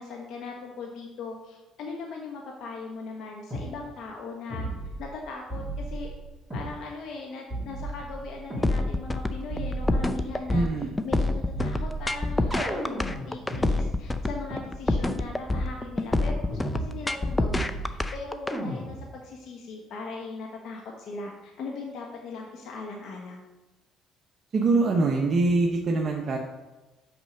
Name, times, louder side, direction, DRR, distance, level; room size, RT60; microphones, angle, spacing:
voice 1, 0.0-4.7 5.0-6.1 6.5-10.7 11.0-23.4, left 3 dB, 65° left, 0 dB, 1.1 m, -39 dB
sound 1, 3.5-3.7 4.5-5.2 5.5-6.7 7.5-8.7 9.5-10.7 11.5-13.7 14.5-14.6 15.5-15.7 16.5-17.2 17.5-18.1 18.5-19.1, right 1 dB, 5° right, 2.7 m, -34 dB
sound 2, 8.6-18.6, left 2 dB, 15° left, 0.5 m, -27 dB
voice 2, 10.5-10.9 24.5-26.4, right 3 dB, 40° right, 0 dB, 0.9 m, -23 dB
6.0 x 5.4 x 6.6 m, 1.1 s
cardioid pair, 95°, 0 cm